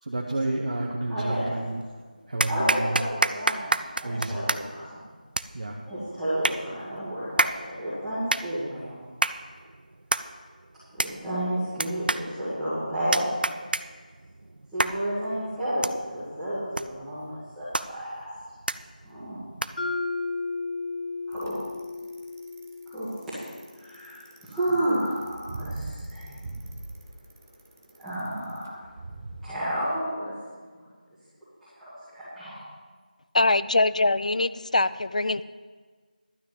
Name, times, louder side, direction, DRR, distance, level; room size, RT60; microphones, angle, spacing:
voice 1, 0.0-1.8 2.3-3.0 4.0-4.5 5.5-5.8, right 2 dB, 45° right, -1 dB, 1.0 m, -30 dB
voice 2, 1.1-1.4 2.5-5.1 5.8-9.0 10.9-13.6 14.7-18.3 19.0-19.4 21.3-21.6 22.9-23.1 23.7-26.4 27.9-28.8 29.4-30.3 31.6-32.6, right 1 dB, ahead, -21 dB, 1.8 m, -31 dB
sound 1, 1.3-1.9 2.4-20.0, right 2 dB, 90° right, 0.5 m, -31 dB
Mallet percussion, 19.8-23.8, left 3 dB, 70° left, 1.3 m, -34 dB
Bicycle, 21.3-29.4, right 2 dB, 20° right, 0.8 m, -41 dB
voice 3, 33.3-35.4, left 2 dB, 50° left, 15 dB, 0.4 m, -23 dB
12.0 x 6.1 x 7.5 m, 1.5 s
figure-of-eight pair, 175°, 5 cm